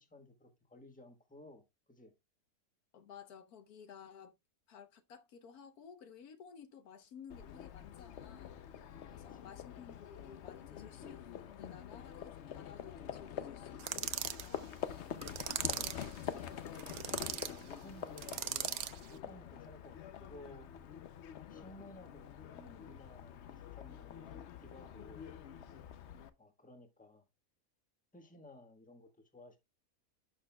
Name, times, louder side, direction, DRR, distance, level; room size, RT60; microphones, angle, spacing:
voice 1, 0.0-2.1 9.1-9.6 17.5-18.8 19.1-21.1 21.5-25.3 26.4-27.3 28.1-29.6, left 1 dB, 5° left, 1.2 m, -57 dB
voice 2, 2.9-4.3 4.7-8.6 9.1-16.9, left 7 dB, 80° left, 1.5 m, -55 dB
Livestock farm animals working animals, 7.3-26.3, left 9 dB, 60° left, 0.8 m, -46 dB
sound 1, 13.8-14.5 15.2-16.1 16.8-17.5 18.2-19.0, right 11 dB, 75° right, 1.1 m, -38 dB
11.5 x 6.2 x 2.3 m
omnidirectional pair, 1.6 m